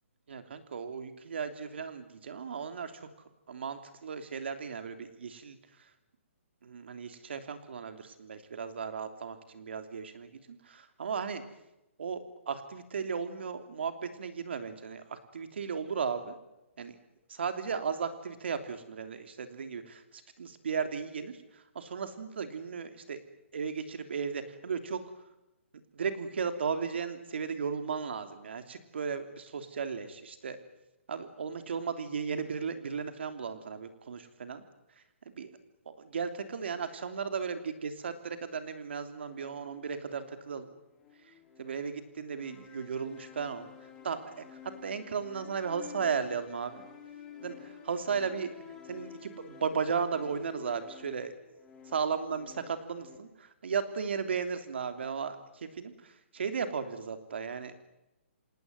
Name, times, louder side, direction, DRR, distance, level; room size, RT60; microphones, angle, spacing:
voice 1, 0.3-3.1 3.5-5.6 6.6-11.4 12.0-16.3 16.8-16.9 17.3-23.2 23.5-25.0 25.9-30.6 31.1-34.6 35.2-35.6 35.8-40.7 41.6-43.7 44.0-46.8 47.4-48.5 48.9-51.3 51.9-57.7, right 6 dB, 55° right, 8 dB, 3.1 m, -35 dB
sound 1, 39.2-53.2, left 7 dB, 10° left, 2.8 m, -51 dB
27.5 x 18.5 x 9.4 m, 0.93 s
hypercardioid pair, 175°, 7 cm